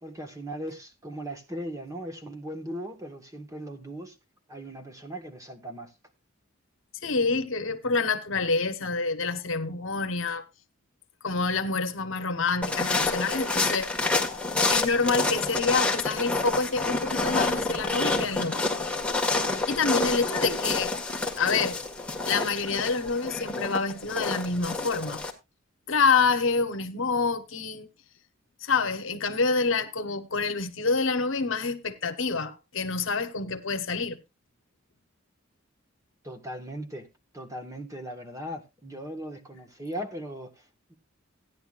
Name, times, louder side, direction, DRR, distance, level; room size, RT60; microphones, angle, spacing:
voice 1, 0.0-4.2 4.5-5.9 36.2-37.1 37.3-40.9, equal, 15° right, 1.5 m, -38 dB
voice 2, 7.0-10.4 11.2-13.9 14.7-18.7 19.7-20.9 21.4-21.8 22.2-25.2 25.9-27.9 28.6-34.2, left 4 dB, 65° left, 1.1 m, -27 dB
sound 1, 12.6-25.3, left 3 dB, 5° left, 1.7 m, -28 dB
15.5 x 10.5 x 2.5 m
head